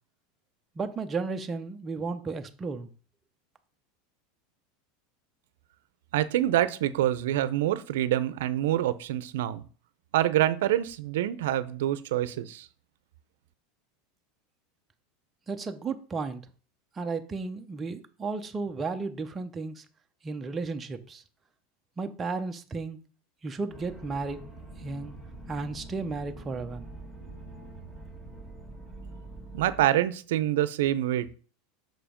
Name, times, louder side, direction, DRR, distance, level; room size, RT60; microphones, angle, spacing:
voice 1, 0.8-2.9 15.5-16.4 17.0-19.8 20.2-21.2 22.0-23.0 23.4-24.4 24.8-25.1 25.5-26.9, right 4 dB, 15° right, 0.7 m, -34 dB
voice 2, 6.1-9.7 10.1-12.7 29.5-31.3, right 13 dB, 80° right, 0.6 m, -26 dB
sound 1, 23.7-29.9, right 2 dB, 5° left, 1.6 m, -44 dB
6.1 x 5.0 x 5.1 m
supercardioid pair, 155°, 0 cm